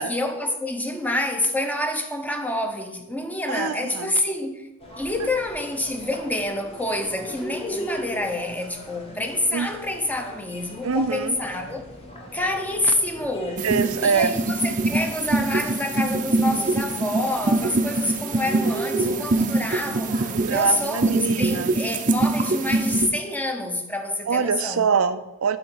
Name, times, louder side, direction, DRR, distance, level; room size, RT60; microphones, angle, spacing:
voice 1, 0.0-4.7 5.0-11.9 12.3-13.7 14.0-24.9, left 1 dB, 10° left, 0.7 m, -27 dB
voice 2, 3.5-4.1 5.2-5.3 9.5-9.7 10.8-11.4 13.6-14.3 20.3-21.7 24.3-25.6, right 6 dB, 90° right, 0.5 m, -24 dB
sound 1, 4.8-20.8, right 1 dB, 30° left, 1.4 m, -38 dB
sound 2, 13.6-23.1, right 2 dB, 40° right, 0.6 m, -24 dB
8.3 x 3.9 x 6.3 m
head